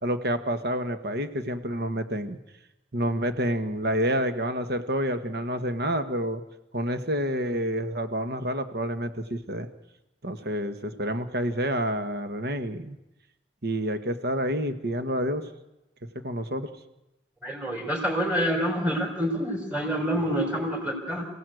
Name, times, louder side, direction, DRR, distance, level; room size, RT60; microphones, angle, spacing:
voice 1, 0.0-2.4 2.9-6.4 6.7-9.7 10.2-13.0 13.6-15.5 16.2-16.7, equal, 60° right, 8 dB, 1.7 m, -28 dB
voice 2, 17.4-21.3, equal, 10° right, 0 dB, 4.5 m, -27 dB
28.5 x 16.5 x 8.0 m, 0.98 s
head